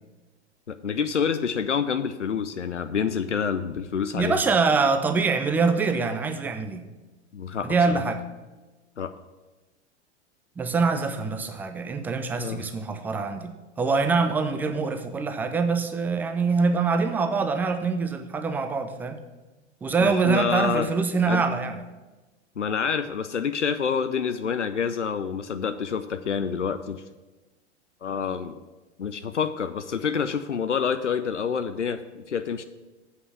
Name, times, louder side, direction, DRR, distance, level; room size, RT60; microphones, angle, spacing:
voice 1, 0.7-4.4 7.3-8.0 9.0-9.1 12.3-12.6 20.0-20.9 21.3-21.4 22.6-27.0 28.0-28.6 29.0-32.6, left 6 dB, 90° left, 10 dB, 0.5 m, -27 dB
voice 2, 4.1-6.8 7.6-8.2 10.6-19.2 19.8-21.8, right 4 dB, 5° right, 7 dB, 0.3 m, -24 dB
7.9 x 5.6 x 6.6 m, 1.2 s
figure-of-eight pair, 95°, 35 cm